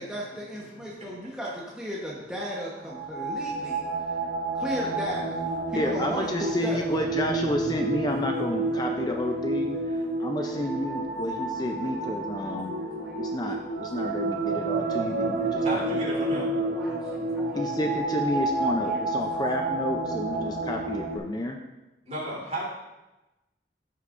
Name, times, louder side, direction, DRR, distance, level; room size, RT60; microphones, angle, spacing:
voice 1, 0.0-3.8 4.5-5.4 5.7-7.0 10.4-10.9 12.7-13.5 14.0-14.2 15.4-16.0 16.4-17.7 18.3-18.4 18.7-19.4 20.0-20.5, equal, 5° right, -6 dB, 1.1 m, -37 dB
sound 1, 2.8-21.2, right 2 dB, 85° right, 2.9 m, -30 dB
voice 2, 5.7-12.7 13.2-16.4 17.5-21.6, left 1 dB, 20° left, 3 dB, 0.5 m, -31 dB
voice 3, 15.6-16.5 22.0-22.7, right 1 dB, 40° right, -6 dB, 3.4 m, -33 dB
14.5 x 6.4 x 2.6 m, 1.0 s
head